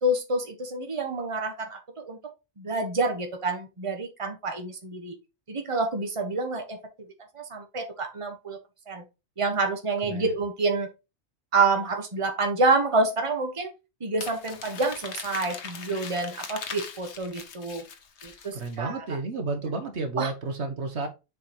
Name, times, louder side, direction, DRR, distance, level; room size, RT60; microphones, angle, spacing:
voice 1, 0.0-2.2 2.6-5.2 5.5-6.8 7.3-8.6 8.9-9.0 9.4-10.9 11.5-13.7 14.0-17.8 18.2-19.1 20.2-20.3, right 3 dB, 25° right, 5 dB, 1.3 m, -28 dB
Crumpling crinkling, 14.2-18.8, left 6 dB, 70° left, 1.2 m, -40 dB
voice 2, 18.5-21.1, right 3 dB, 65° right, 6 dB, 1.4 m, -31 dB
7.0 x 5.1 x 2.9 m, 0.27 s
omnidirectional pair, 1.2 m